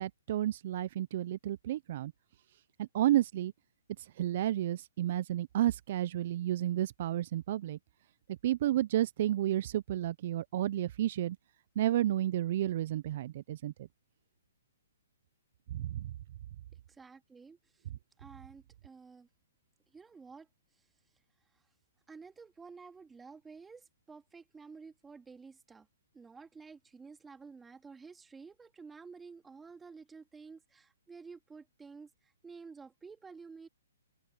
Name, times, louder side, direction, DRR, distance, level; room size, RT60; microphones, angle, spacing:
voice 1, 0.0-2.1 2.8-3.5 4.0-7.8 8.3-11.4 11.8-13.7 15.7-16.1, right 13 dB, 50° right, 0.7 m, -31 dB
voice 2, 16.9-17.8 18.2-19.3 19.9-20.5 22.1-25.9 26.1-33.7, right 5 dB, 10° right, 2.4 m, -51 dB
hypercardioid pair, 130°, 0 cm